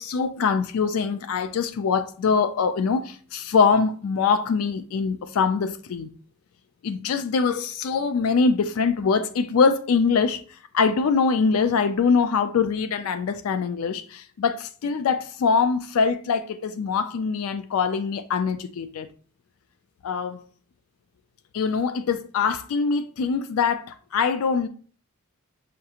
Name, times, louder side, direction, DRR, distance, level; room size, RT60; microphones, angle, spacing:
voice 1, 0.0-6.1 6.8-19.1 20.0-20.4 21.5-24.7, left 5 dB, 75° left, 0.4 m, -23 dB
6.4 x 2.4 x 2.8 m
head